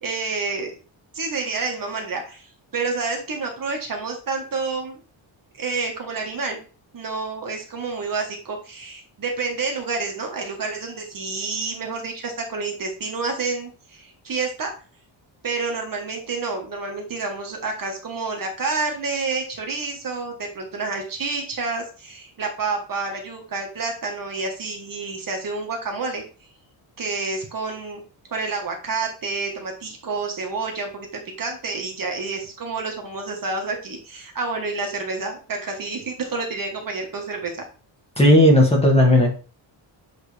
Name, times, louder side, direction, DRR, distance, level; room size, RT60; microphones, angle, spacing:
voice 1, 0.0-0.7 1.1-5.0 5.6-6.6 6.9-14.7 15.4-26.2 27.0-28.0 28.3-37.6, right 4 dB, 45° right, 2 dB, 1.5 m, -29 dB
voice 2, 38.2-39.3, left 1 dB, 10° left, -1 dB, 1.8 m, -14 dB
8.0 x 3.8 x 3.4 m, 0.36 s
wide cardioid pair, 150°, 48 cm